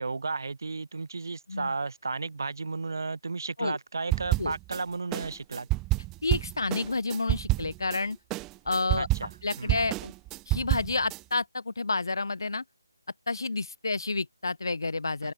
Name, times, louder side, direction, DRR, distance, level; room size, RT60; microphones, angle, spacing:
voice 1, 0.0-5.7 9.0-9.3 9.6-9.8 15.2-15.3, right 4 dB, 65° right, 4.1 m, -33 dB
sound 1, 4.1-4.8 5.1-8.0 8.3-11.2, right 20 dB, 10° right, 0.7 m, -29 dB
voice 2, 6.2-8.2 8.7-9.1 9.4-10.1 10.5-12.6 13.3-15.3, left 3 dB, 80° left, 2.7 m, -30 dB
open air
figure-of-eight pair, 170°, 2 cm